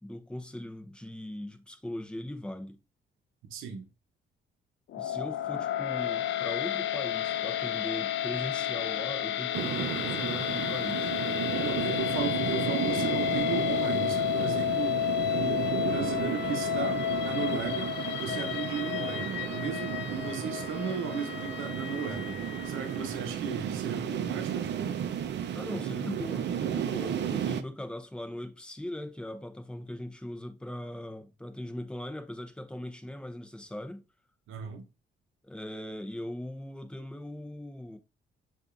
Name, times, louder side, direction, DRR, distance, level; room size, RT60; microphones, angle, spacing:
voice 1, 0.0-2.8 4.9-11.2 25.5-34.0 35.4-38.0, left 1 dB, 5° left, 0.7 m, -40 dB
voice 2, 3.5-3.9 11.5-15.0 15.3-25.0 34.5-34.9, right 6 dB, 85° right, 0.9 m, -36 dB
sound 1, 4.9-23.1, left 11 dB, 70° left, 0.5 m, -31 dB
sound 2, 9.5-27.6, right 9 dB, 60° right, 0.6 m, -34 dB
6.7 x 2.6 x 2.5 m
cardioid pair, 90°, 20 cm